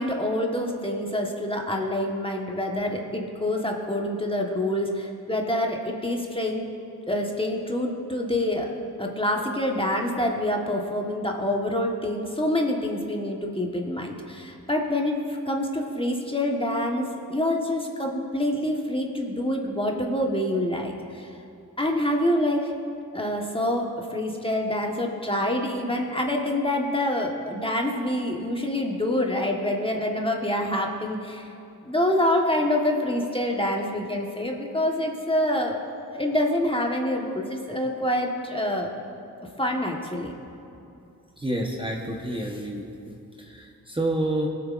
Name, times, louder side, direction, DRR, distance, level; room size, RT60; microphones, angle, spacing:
voice 1, 0.0-6.6 7.1-8.7 9.0-21.3 21.8-22.7 23.1-31.5 31.8-35.8 36.1-38.9 39.6-40.3, left 1 dB, 15° left, 0 dB, 1.3 m, -26 dB
voice 2, 41.4-44.5, right 1 dB, 15° right, -1 dB, 1.1 m, -29 dB
18.0 x 6.9 x 2.5 m, 2.7 s
cardioid pair, 40°, 37 cm